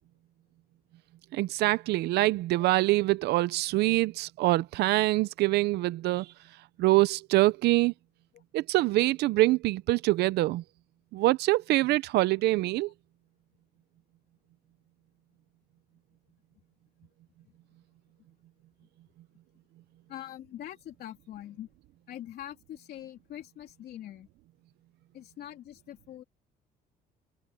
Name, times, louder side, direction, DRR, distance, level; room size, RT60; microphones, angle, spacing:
voice 1, 1.3-6.3 6.8-7.9 8.5-10.6 11.1-12.9, right 18 dB, 75° right, 0.6 m, -25 dB
voice 2, 20.1-21.7 22.1-24.3 25.1-26.2, left 12 dB, 70° left, 3.4 m, -43 dB
cardioid pair, 110°, 17 cm